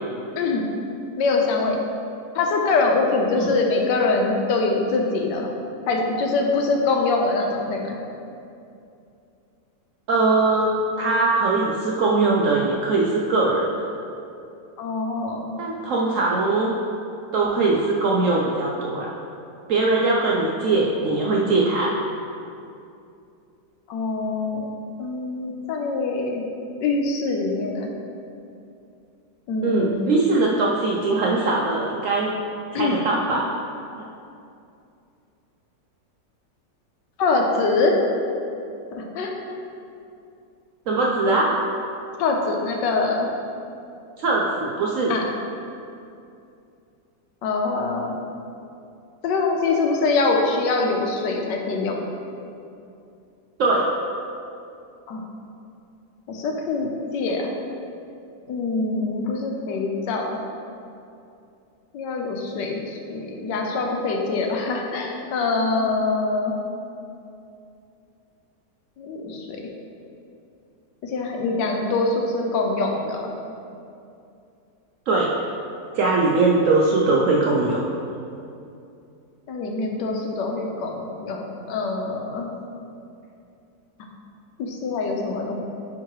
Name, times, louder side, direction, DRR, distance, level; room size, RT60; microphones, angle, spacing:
voice 1, 1.2-1.8 2.3-5.5 5.9-8.0 14.8-15.5 23.9-24.7 25.0-26.4 26.8-27.9 29.5-30.3 32.7-33.0 37.2-37.9 38.9-39.6 42.2-43.3 45.1-45.2 47.4-48.2 49.2-52.0 55.1-55.2 56.3-57.5 58.5-60.4 61.9-66.5 69.0-69.6 71.0-73.3 79.5-82.5 84.6-85.6, left 3 dB, 90° left, 1 dB, 1.3 m, -24 dB
voice 2, 10.1-10.7 11.0-13.9 15.6-16.7 17.3-19.1 19.7-21.9 29.6-32.3 32.7-33.5 34.0-34.1 40.9-41.5 44.2-45.1 53.6-53.9 75.1-75.3 75.9-77.9, right 3 dB, 70° right, -3 dB, 0.7 m, -21 dB
9.1 x 3.7 x 3.0 m, 2.6 s
omnidirectional pair, 1.9 m